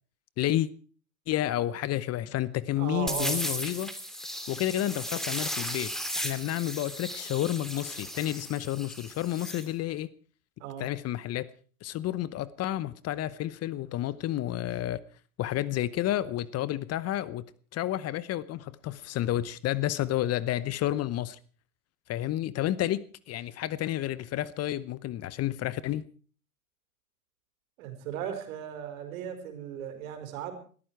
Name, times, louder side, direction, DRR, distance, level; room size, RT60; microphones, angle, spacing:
voice 1, 0.4-0.7 1.3-3.9 4.5-10.1 10.8-11.5 11.8-15.0 15.4-17.4 17.7-21.4 22.1-26.0, left 13 dB, 35° left, 0.9 m, -30 dB
voice 2, 2.8-3.4 10.6-10.9 27.8-30.5, right 9 dB, 65° right, 4.9 m, -36 dB
sound 1, 3.1-9.7, equal, ahead, 2.8 m, -36 dB
20.5 x 14.0 x 4.7 m
hypercardioid pair, 95°, 44 cm